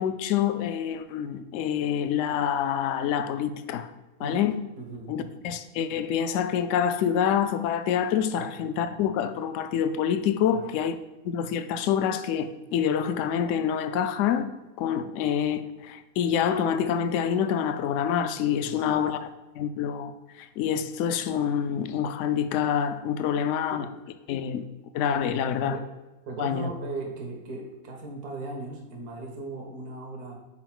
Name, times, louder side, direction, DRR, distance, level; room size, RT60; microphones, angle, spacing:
voice 1, 0.0-3.9 4.2-4.6 5.1-11.0 11.2-14.5 14.8-19.3 19.5-23.9 24.3-24.6 24.9-25.8 26.4-26.7, left 8 dB, 70° left, 0.8 m, -27 dB
voice 2, 4.8-5.3 8.4-8.5 10.5-10.6 18.7-19.0 23.7-23.8 25.6-25.8 26.3-30.3, right 3 dB, 80° right, 1.6 m, -38 dB
4.6 x 4.4 x 5.9 m
omnidirectional pair, 1.6 m